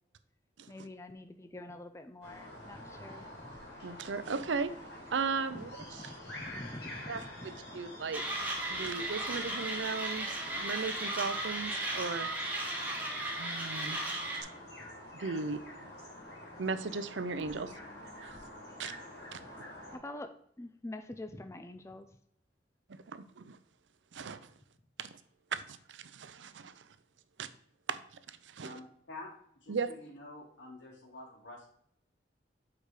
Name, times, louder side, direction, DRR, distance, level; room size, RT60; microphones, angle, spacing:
voice 1, 0.7-3.6 5.5-5.6 6.0-7.8 19.9-20.3 20.6-22.1, left 1 dB, 15° left, 7 dB, 0.4 m, -46 dB
sound 1, 2.2-20.0, left 1 dB, 65° left, 3.3 m, -48 dB
voice 2, 3.8-4.7 5.1-5.7 7.1-8.2 8.7-12.9 13.4-14.0 15.1-15.9 16.6-17.7 18.2-18.4 18.8-18.9 19.3-19.7 23.1-23.6 24.1-24.5 25.0-25.1 25.5-26.8 27.4-27.5 27.9-28.0 28.3-28.7 29.7-29.9, right 4 dB, 90° right, 12 dB, 0.6 m, -37 dB
Mechanisms, 8.1-14.4, right 1 dB, 10° right, 1.6 m, -36 dB
voice 3, 28.6-29.3 29.6-31.7, left 2 dB, 80° left, -3 dB, 2.6 m, -48 dB
6.6 x 4.8 x 4.9 m, 0.69 s
head